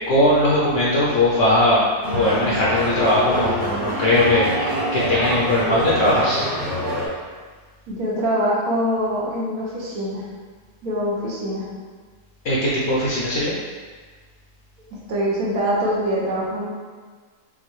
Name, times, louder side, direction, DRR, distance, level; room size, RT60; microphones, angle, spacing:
voice 1, 0.1-1.9 2.1-6.4 12.4-13.5, left 1 dB, 60° left, -6 dB, 1.0 m, -19 dB
sound 1, 2.0-7.1, equal, 40° right, 1.3 m, -26 dB
voice 2, 7.9-10.3 10.8-11.7 14.9-16.7, equal, 70° right, -5 dB, 1.4 m, -24 dB
5.9 x 2.3 x 3.1 m, 1.5 s
omnidirectional pair, 1.6 m